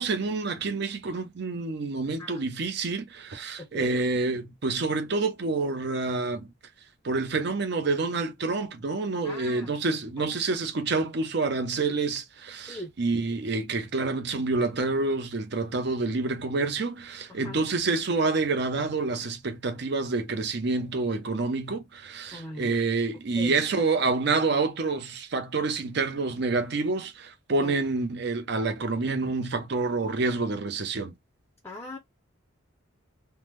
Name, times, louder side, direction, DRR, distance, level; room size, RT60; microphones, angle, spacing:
voice 1, 0.0-6.5 7.0-31.1, right 3 dB, 55° right, 0.6 m, -28 dB
voice 2, 2.0-2.5 3.6-4.0 9.2-9.8 10.2-10.3 12.7-12.9 17.3-17.6 22.3-22.7 23.3-23.6 27.5-27.8 31.6-32.0, left 2 dB, 10° left, 0.5 m, -40 dB
3.5 x 2.0 x 3.0 m
head